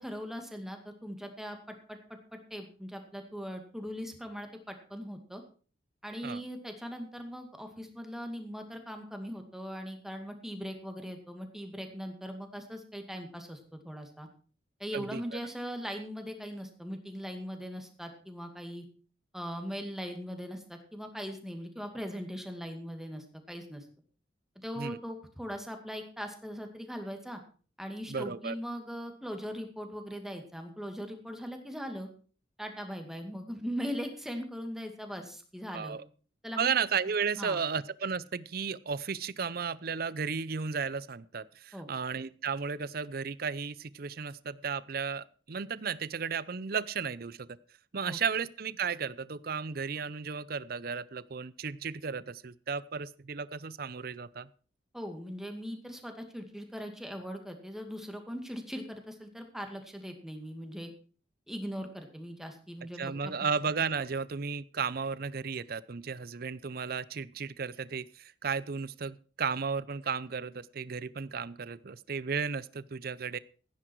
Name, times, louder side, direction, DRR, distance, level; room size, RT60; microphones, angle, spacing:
voice 1, 0.0-2.0 2.3-5.4 6.0-14.3 14.8-18.8 19.3-23.9 24.6-27.4 27.8-32.1 32.6-36.0 36.4-36.7 37.3-37.6 41.7-41.9 48.1-48.2 54.9-60.9 61.5-63.3, equal, ahead, 4 dB, 2.1 m, -40 dB
voice 2, 28.1-28.6 35.7-36.0 36.6-47.5 47.9-54.5 63.0-73.4, right 6 dB, 55° right, 19 dB, 0.6 m, -34 dB
15.5 x 10.0 x 4.6 m, 0.40 s
head